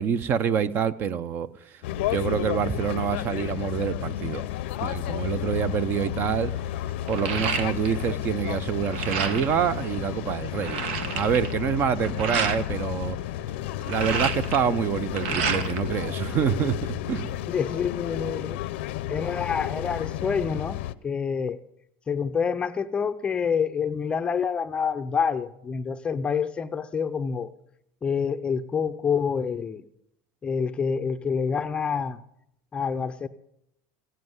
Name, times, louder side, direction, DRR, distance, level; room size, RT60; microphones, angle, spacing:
voice 1, 0.0-1.5 2.1-4.4 4.8-6.5 7.1-10.8 11.1-13.2 13.9-17.4, right 8 dB, 35° right, 0.6 m, -26 dB
sound 1, 1.8-20.9, left 13 dB, 85° left, 0.6 m, -32 dB
sound 2, 5.9-6.0 6.4-8.1 8.4-9.6 10.1-10.2 10.4-12.6 13.6-15.9 16.2-17.1, right 6 dB, 85° right, 1.5 m, -30 dB
voice 2, 17.5-18.6 19.1-21.6 22.1-27.5 28.0-29.8 30.4-32.2 32.7-33.3, left 6 dB, 15° left, 0.5 m, -27 dB
16.5 x 7.6 x 9.4 m
cardioid pair, 155°, 6 cm